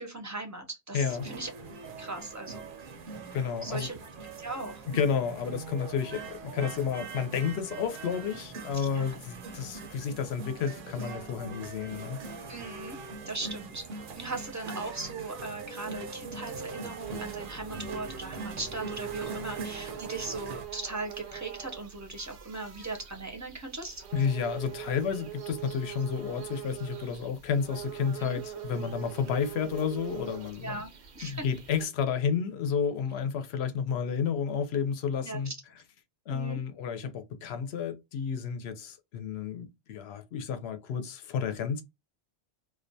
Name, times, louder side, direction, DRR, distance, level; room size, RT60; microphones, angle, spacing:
voice 1, 0.0-1.5 2.0-2.7 3.6-4.0 4.4-4.9 8.7-9.1 12.5-13.0 13.3-24.0 28.2-28.4 30.6-31.4 35.2-35.6 36.3-36.6, right 3 dB, 20° right, 0.5 m, -38 dB
voice 2, 0.9-1.3 3.3-3.9 4.9-12.2 24.1-30.8 31.2-35.5 36.3-41.8, left 7 dB, 80° left, 0.8 m, -31 dB
sound 1, 1.1-20.7, right 4 dB, 60° right, 0.7 m, -42 dB
sound 2, 17.0-31.9, right 11 dB, 85° right, 0.9 m, -43 dB
2.4 x 2.2 x 2.6 m
omnidirectional pair, 1.1 m